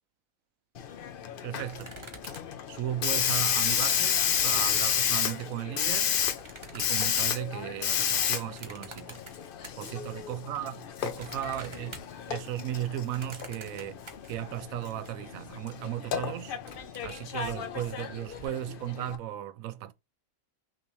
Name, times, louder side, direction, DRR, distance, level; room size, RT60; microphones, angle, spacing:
Hiss, 0.8-19.2, left 8 dB, 60° left, 0.6 m, -31 dB
voice 1, 1.4-2.0 2.7-6.2 6.7-9.3 9.8-14.0 14.3-16.6 17.0-19.9, right 12 dB, 75° right, 1.0 m, -36 dB
sound 1, 1.6-5.0 5.7-10.2 10.5-15.1 15.5-15.6 15.8-16.1 16.4-18.5, right 3 dB, 25° right, 0.8 m, -49 dB
6.0 x 2.9 x 3.1 m
omnidirectional pair, 1.5 m